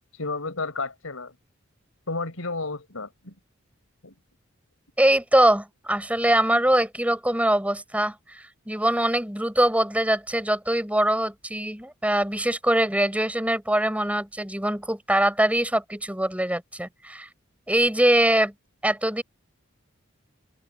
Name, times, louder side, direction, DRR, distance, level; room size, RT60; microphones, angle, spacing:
voice 1, 0.2-1.3 2.1-3.3 4.0-4.1, left 3 dB, 85° left, 4.8 m, -32 dB
voice 2, 5.0-17.3 17.7-18.5 18.8-19.2, right 1 dB, 5° right, 6.3 m, -23 dB
open air
head